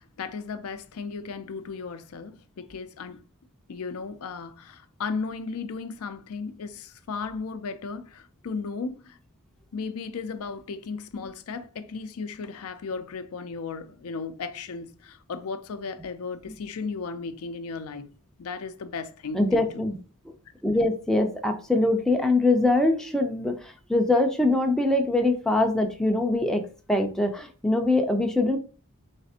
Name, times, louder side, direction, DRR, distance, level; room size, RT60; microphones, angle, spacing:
voice 1, 0.0-3.2 3.7-9.2 9.7-18.1 18.4-19.8, left 4 dB, 75° left, 0.4 m, -35 dB
voice 2, 19.3-20.0 20.6-26.6 26.9-28.6, left 2 dB, ahead, 0.5 m, -23 dB
4.1 x 3.2 x 2.8 m
head